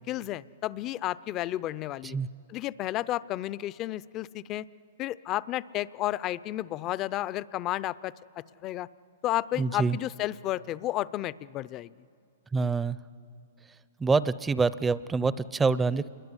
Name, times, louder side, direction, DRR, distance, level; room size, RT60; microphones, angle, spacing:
voice 1, 0.1-2.2 2.5-4.7 5.0-8.9 9.2-11.9 12.6-12.7, left 14 dB, 35° left, 19 dB, 0.6 m, -32 dB
voice 2, 9.6-10.0 12.5-13.0 14.0-16.1, right 4 dB, 10° right, 17 dB, 0.6 m, -26 dB
28.0 x 21.5 x 9.8 m, 2.4 s
hypercardioid pair, 125°, 0 cm